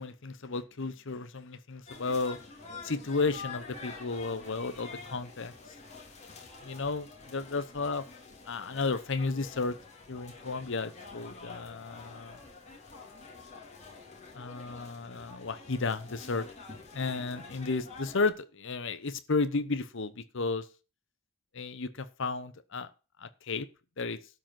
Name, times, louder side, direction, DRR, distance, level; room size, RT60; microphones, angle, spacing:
voice 1, 0.0-2.4 2.8-5.5 6.6-8.0 8.5-9.8 10.1-12.4 14.3-16.4 16.9-20.7 21.5-22.9 23.2-23.7 24.0-24.2, left 3 dB, 60° left, 11 dB, 0.9 m, -33 dB
sound 1, 1.9-18.3, left 4 dB, 35° left, 3.1 m, -47 dB
12.0 x 5.0 x 7.6 m, 0.33 s
head